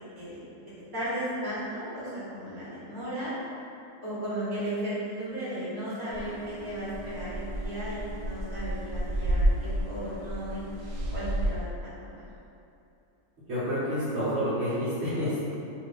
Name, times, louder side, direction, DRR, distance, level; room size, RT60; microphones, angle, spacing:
voice 1, 0.9-3.3 4.0-10.7 11.1-11.7 12.0-12.2, right 1 dB, 15° right, -13 dB, 1.1 m, -35 dB
sound 1, 6.1-11.5, right 1 dB, 75° right, 1.0 m, -31 dB
voice 2, 13.5-15.4, equal, 55° right, -14 dB, 1.1 m, -28 dB
2.6 x 2.6 x 3.5 m, 2.8 s
omnidirectional pair, 1.5 m